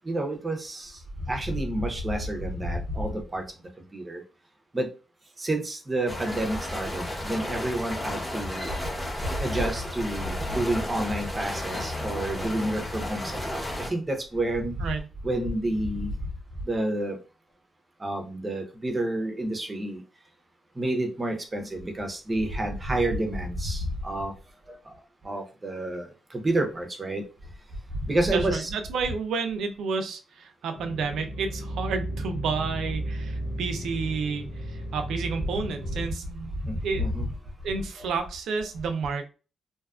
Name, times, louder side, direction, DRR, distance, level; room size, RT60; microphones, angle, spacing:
voice 1, 0.1-0.9 1.3-3.4 3.9-4.2 4.7-4.9 5.4-8.7 9.4-13.6 13.9-14.7 15.2-16.1 16.7-17.1 18.0-20.0 20.8-24.3 24.7-24.8 25.2-26.1 26.4-27.2 28.1-28.7 36.6-37.3, right 1 dB, 20° right, 3 dB, 0.6 m, -29 dB
sound 1, 6.1-13.9, left 1 dB, 10° left, 0.9 m, -33 dB
voice 2, 28.3-36.6 36.8-37.0 37.6-39.2, right 5 dB, 80° right, 6 dB, 0.5 m, -30 dB
sound 2, 30.7-36.1, right 1 dB, 85° left, 0.6 m, -34 dB
2.6 x 2.3 x 2.4 m, 0.34 s
cardioid pair, 135°, 0 cm